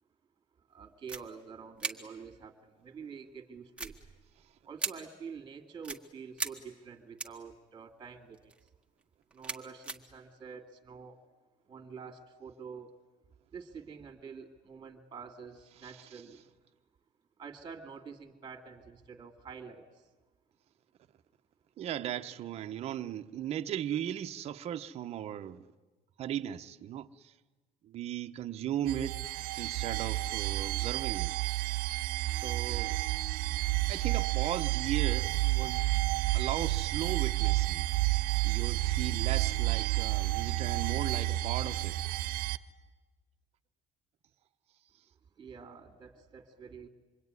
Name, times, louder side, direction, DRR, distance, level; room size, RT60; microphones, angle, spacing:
voice 1, 0.7-3.9 4.6-8.5 9.3-11.2 11.7-12.9 13.5-16.5 17.4-20.1 45.4-46.9, right 6 dB, 30° right, 2.2 m, -47 dB
sound 1, 1.1-1.2 1.8-1.9 3.8-4.3 4.8-4.9 5.8-6.0 6.4-6.5 7.2-7.5 8.3-8.7 9.0-10.0, right 3 dB, 10° right, 1.5 m, -37 dB
voice 2, 21.8-25.6 26.2-27.3 27.8-29.2 29.6-31.3 32.4-33.0 33.9-35.8 36.3-37.9 38.4-42.0, right 11 dB, 45° right, 0.9 m, -37 dB
sound 2, 28.9-42.6, right 18 dB, 85° right, 0.9 m, -30 dB
26.5 x 23.5 x 9.6 m
cardioid pair, 165°, 15 cm